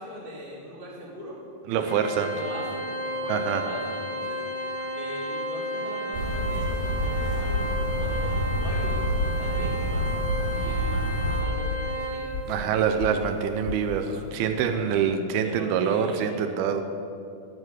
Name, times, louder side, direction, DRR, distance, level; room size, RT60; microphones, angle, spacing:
voice 1, 0.0-1.4 1.7-2.0 2.3-4.4 4.9-7.6 8.0-9.0 9.4-10.1 10.5-12.4 14.0-14.9 15.4-16.5, equal, 25° left, -5 dB, 1.3 m, -40 dB
voice 2, 1.7-2.4 3.3-3.6 12.5-16.8, right 7 dB, 80° right, 8 dB, 2.5 m, -25 dB
Organ, 1.9-12.6, equal, 60° left, 2.6 m, -32 dB
sound 1, 6.1-11.4, right 1 dB, 55° right, 3.2 m, -28 dB
sound 2, 6.2-14.3, left 8 dB, 80° left, 2.3 m, -37 dB
12.0 x 9.8 x 8.1 m, 2.6 s
omnidirectional pair, 4.6 m